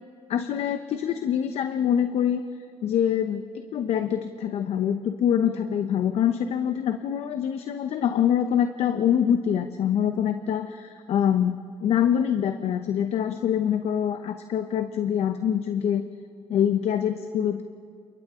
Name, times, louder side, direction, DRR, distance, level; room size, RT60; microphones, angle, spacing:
voice 1, 0.3-2.4 2.8-3.4 3.7-16.0 16.5-17.6, left 9 dB, 70° left, 8 dB, 0.9 m, -25 dB
29.5 x 27.5 x 3.8 m, 2.4 s
cardioid pair, 105°, 11 cm